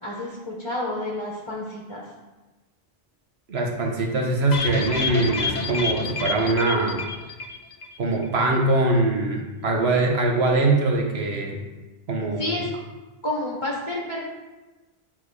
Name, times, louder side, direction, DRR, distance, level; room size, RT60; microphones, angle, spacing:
voice 1, 0.0-2.0 12.4-12.7 13.2-14.2, left 1 dB, 30° left, -3 dB, 1.1 m, -29 dB
voice 2, 3.5-7.0 8.0-11.6 12.1-12.6, right 2 dB, 80° right, 1 dB, 1.4 m, -22 dB
sound 1, 4.5-8.0 8.2-8.3 8.6-8.7, left 4 dB, 50° left, 0.6 m, -29 dB
9.2 x 3.6 x 4.8 m, 1.2 s
omnidirectional pair, 1.1 m